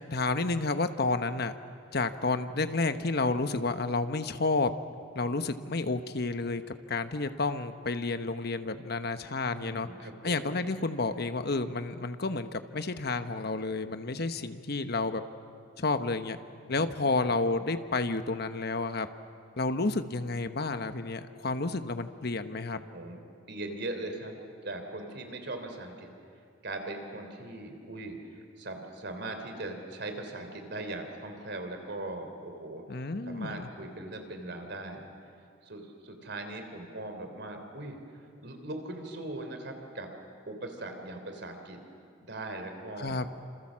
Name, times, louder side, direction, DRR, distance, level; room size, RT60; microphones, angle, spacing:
voice 1, 0.1-1.5 1.9-4.7 5.1-6.6 6.9-9.9 10.2-15.2 15.8-16.4 16.7-19.1 19.6-22.9 32.9-33.7 43.0-43.3, left 3 dB, 60° left, 9 dB, 1.2 m, -30 dB
voice 2, 9.5-10.5 16.7-17.1 22.7-23.2 23.5-24.4 24.6-26.1 26.6-35.1 35.6-40.1 40.5-41.8 42.2-43.2, right 2 dB, 65° right, 5 dB, 3.4 m, -40 dB
27.5 x 27.5 x 7.5 m, 2.3 s
head